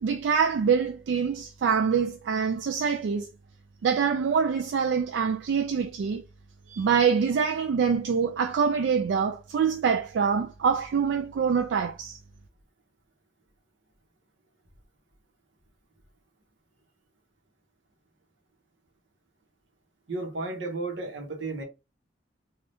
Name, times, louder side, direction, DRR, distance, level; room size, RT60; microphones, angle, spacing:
voice 1, 0.0-3.3 3.8-6.2 6.7-12.2, right 6 dB, 70° right, 0.3 m, -25 dB
voice 2, 20.1-21.6, right 2 dB, 90° right, 0.9 m, -33 dB
2.6 x 2.3 x 3.3 m
head